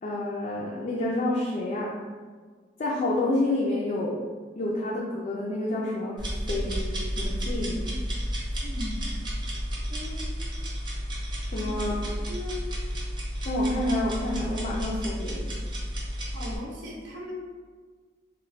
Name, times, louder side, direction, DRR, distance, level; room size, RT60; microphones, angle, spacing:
voice 1, 0.0-2.0 2.8-4.2 4.6-7.9 11.4-12.0 13.5-15.5, left 1 dB, 40° left, -4 dB, 0.3 m, -29 dB
sound 1, 6.2-16.6, equal, 25° right, 0.7 m, -32 dB
voice 2, 8.6-9.1 9.9-10.4 11.6-11.8 12.1-12.6 16.3-17.3, left 1 dB, 70° right, -3 dB, 0.6 m, -38 dB
2.2 x 2.1 x 3.8 m, 1.5 s
head